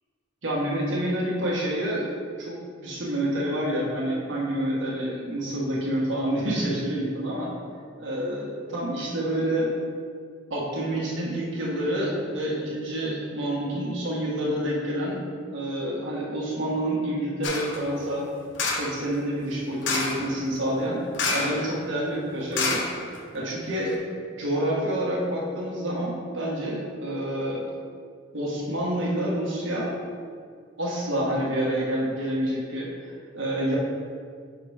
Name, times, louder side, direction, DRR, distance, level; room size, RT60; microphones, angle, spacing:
voice 1, 0.4-2.1 2.4-2.6 2.8-7.5 8.0-9.7 10.5-15.2 15.5-18.3 18.8-21.0 21.3-22.8 23.3-24.0 24.4-27.6 28.3-29.9 30.8-33.8, right 1 dB, 85° right, -5 dB, 1.6 m, -28 dB
sound 1, 17.4-17.8 18.6-19.0 19.8-20.3 21.1-21.7 21.9-22.0 22.5-23.4 23.9-24.0, left 3 dB, 70° left, 0.8 m, -27 dB
6.1 x 3.9 x 4.9 m, 2.1 s
head